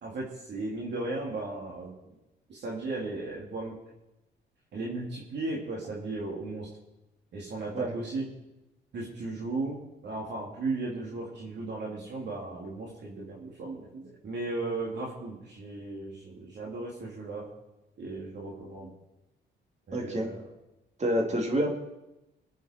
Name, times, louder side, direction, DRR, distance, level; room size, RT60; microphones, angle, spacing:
voice 1, 0.0-2.0 2.5-3.8 4.7-6.7 7.3-8.3 8.9-17.5 18.0-18.9 19.9-20.5, right 2 dB, 60° right, -3 dB, 2.9 m, -36 dB
voice 2, 19.9-20.3 21.0-21.8, right 1 dB, 35° right, 1 dB, 2.9 m, -27 dB
22.0 x 8.2 x 4.5 m, 0.94 s
cardioid pair, 90°, 20 cm